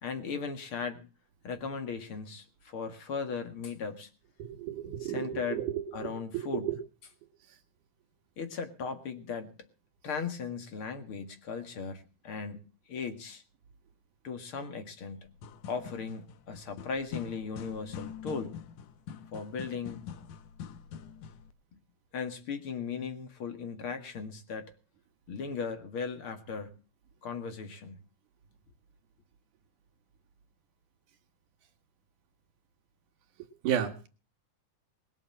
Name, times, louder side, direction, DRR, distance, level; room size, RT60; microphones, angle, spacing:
voice 1, 0.0-1.1 1.4-4.1 5.0-5.6 5.9-6.7 8.4-9.6 10.0-13.4 14.2-15.3 15.7-18.6 19.3-20.0 21.7-21.8 22.1-24.7 25.3-26.8 27.2-28.0, left 5 dB, 50° left, 2.4 m, -37 dB
voice 2, 4.4-6.8 33.6-34.1, right 10 dB, 85° right, 3.2 m, -33 dB
sound 1, 15.3-21.5, left 8 dB, 80° left, 2.5 m, -44 dB
21.0 x 7.3 x 7.3 m
omnidirectional pair, 3.5 m